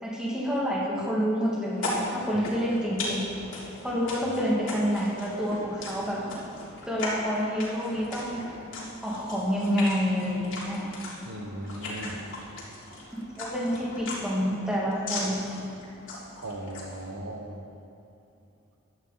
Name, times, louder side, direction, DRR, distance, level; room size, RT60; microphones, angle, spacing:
voice 1, 0.0-3.2 3.8-6.2 6.9-8.5 9.0-10.9 13.4-15.4, equal, 5° right, -5 dB, 2.4 m, -28 dB
Eating With Open Mouth, 1.7-17.1, left 2 dB, 60° left, 3.6 m, -38 dB
voice 2, 11.2-12.2 16.4-17.6, right 1 dB, 80° right, 3 dB, 1.3 m, -37 dB
17.0 x 12.0 x 4.2 m, 2.6 s
head